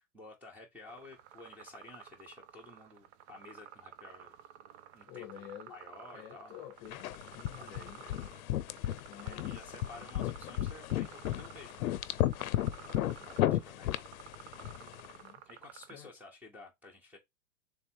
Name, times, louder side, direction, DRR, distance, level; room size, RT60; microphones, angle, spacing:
voice 1, 0.0-4.4 4.9-6.6 7.5-8.0 9.2-12.6 12.9-14.0 15.4-17.2, left 3 dB, 5° right, 1.0 m, -53 dB
sound 1, 0.9-15.9, right 9 dB, 50° right, 0.5 m, -53 dB
voice 2, 5.1-5.7 6.1-8.0 9.1-9.6 12.9-13.0 13.4-13.9 14.7-15.4 15.9-16.1, left 11 dB, 35° left, 0.8 m, -50 dB
sound 2, 6.9-15.1, left 14 dB, 75° left, 0.6 m, -34 dB
3.5 x 3.4 x 4.5 m
supercardioid pair, 150°, 43 cm